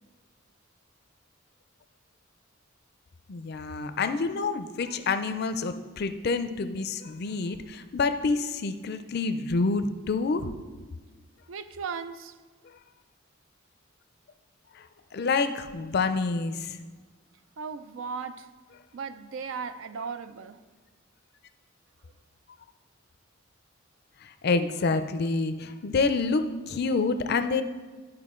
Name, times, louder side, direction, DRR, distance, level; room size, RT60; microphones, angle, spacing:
voice 1, 3.3-10.5 14.8-14.9 15.1-16.8 24.2-27.6, left 4 dB, 50° left, 10 dB, 0.4 m, -28 dB
voice 2, 11.5-12.3 17.6-18.5 18.9-20.6, right 5 dB, 70° right, 11 dB, 0.4 m, -36 dB
11.0 x 4.6 x 3.7 m, 1.4 s
head